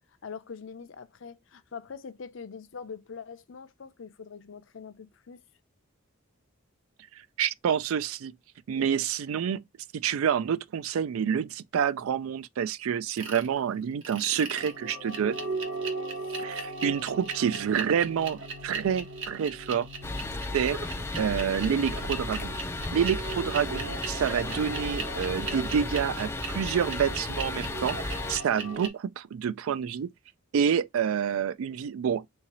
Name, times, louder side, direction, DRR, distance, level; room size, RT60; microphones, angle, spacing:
voice 1, 0.2-5.4 16.5-16.6, left 6 dB, 65° left, 0.5 m, -43 dB
voice 2, 7.4-8.4 8.7-9.6 9.9-15.4 16.4-19.9 20.5-20.8 21.2-22.6 22.9-30.1 30.5-32.4, right 8 dB, 80° right, 0.3 m, -28 dB
sound 1, 13.2-13.5 14.0-28.9, right 3 dB, 65° right, 1.0 m, -37 dB
sound 2, 20.0-28.4, left 2 dB, 10° left, 0.3 m, -34 dB
3.7 x 2.8 x 2.8 m
head